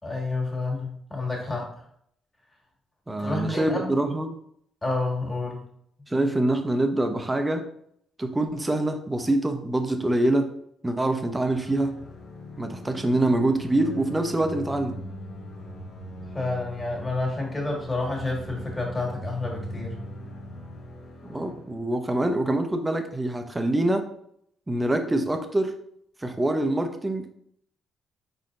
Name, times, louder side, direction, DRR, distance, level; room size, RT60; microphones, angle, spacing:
voice 1, 0.0-1.7 3.2-3.9 4.8-5.7 16.3-20.0, left 2 dB, 20° left, -1 dB, 1.8 m, -29 dB
voice 2, 3.1-4.4 6.1-7.6 8.2-10.5 10.8-12.0 12.6-15.0 21.2-24.1 24.7-25.8 26.2-27.3, right 1 dB, 15° right, 6 dB, 0.7 m, -25 dB
sound 1, 11.4-22.2, left 1 dB, 70° left, 1.0 m, -40 dB
4.9 x 4.2 x 2.6 m, 0.70 s
cardioid pair, 90°, 0 cm